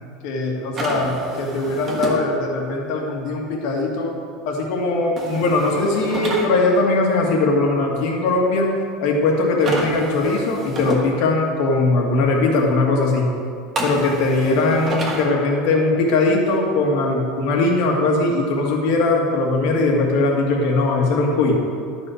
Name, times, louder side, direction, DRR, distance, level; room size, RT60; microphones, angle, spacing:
voice 1, 0.2-4.2 4.5-8.7 9.0-13.3 13.8-21.6, left 2 dB, 55° left, 0 dB, 1.9 m, -20 dB
sound 1, 0.7-2.2 5.2-6.5 9.6-11.0 13.8-15.3, right 2 dB, 25° right, 1.4 m, -29 dB
11.5 x 5.5 x 6.4 m, 2.3 s
cardioid pair, 170°, 0 cm